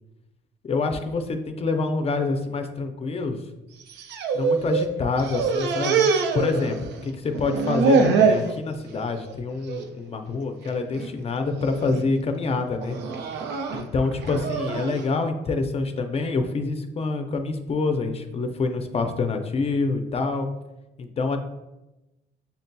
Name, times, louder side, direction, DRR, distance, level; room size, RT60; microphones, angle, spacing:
voice 1, 0.6-3.4 4.3-6.0 6.3-6.8 7.0-13.0 13.7-20.5 21.0-21.4, left 3 dB, 35° left, 6 dB, 0.5 m, -26 dB
sound 1, 3.8-4.9 5.2-7.1 7.3-8.5 9.0-9.3 9.7-9.9 10.7-11.1 11.6-12.0 12.8-15.0, right 5 dB, 75° right, 0.5 m, -24 dB
6.8 x 2.7 x 2.2 m, 0.98 s
cardioid pair, 105°, 18 cm